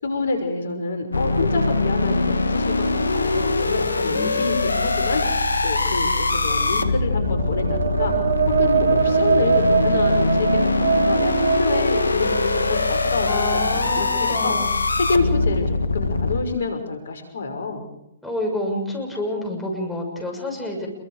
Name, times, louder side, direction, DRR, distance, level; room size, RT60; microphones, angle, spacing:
voice 1, 0.0-5.2 5.6-8.1 8.5-14.6 15.1-17.8, left 4 dB, 70° left, 5 dB, 5.8 m, -27 dB
sound 1, 1.1-16.4, left 3 dB, 90° left, 1.8 m, -22 dB
voice 2, 4.0-4.6 13.2-14.7 18.2-20.9, left 1 dB, 5° left, -2 dB, 6.6 m, -28 dB
sound 2, 7.3-13.1, right 6 dB, 70° right, 1.3 m, -22 dB
28.0 x 23.0 x 5.0 m, 0.82 s
hypercardioid pair, 130°, 0 cm